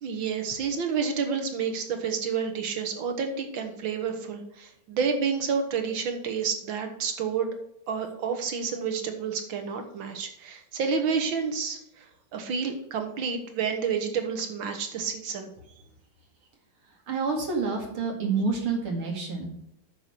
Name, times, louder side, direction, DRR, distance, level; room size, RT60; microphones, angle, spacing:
voice 1, 0.0-7.5 7.9-15.5, right 6 dB, 70° right, 5 dB, 2.1 m, -29 dB
voice 2, 17.1-19.5, right 4 dB, 85° right, 1 dB, 3.0 m, -28 dB
9.5 x 6.8 x 4.6 m, 0.78 s
omnidirectional pair, 2.3 m